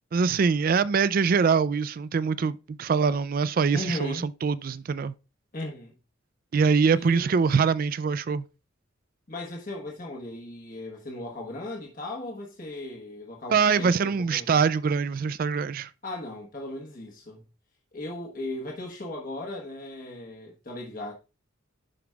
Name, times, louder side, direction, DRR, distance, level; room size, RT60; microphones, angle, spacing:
voice 1, 0.1-5.1 6.5-8.5 13.5-15.9, right 5 dB, 45° right, 0.3 m, -24 dB
voice 2, 3.7-4.3 5.5-5.9 6.9-7.2 9.3-14.6 16.0-17.4 17.9-21.1, left 1 dB, 40° left, 1.2 m, -37 dB
11.0 x 5.1 x 2.3 m
head